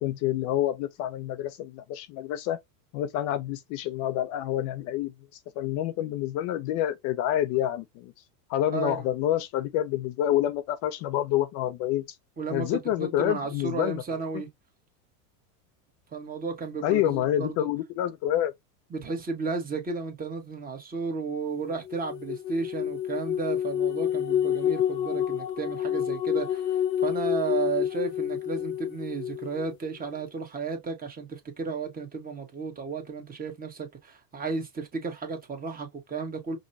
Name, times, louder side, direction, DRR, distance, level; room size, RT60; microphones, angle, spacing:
voice 1, 0.0-2.6 2.9-5.1 5.6-8.1 8.5-12.0 12.5-14.0 16.8-18.5, left 12 dB, 40° left, 0.4 m, -27 dB
voice 2, 8.7-9.1 12.4-14.5 16.1-17.7 18.9-36.6, right 4 dB, 20° right, 1.3 m, -33 dB
sound 1, 21.8-29.7, left 10 dB, 85° left, 1.0 m, -28 dB
5.2 x 2.2 x 2.6 m
hypercardioid pair, 105°, 48 cm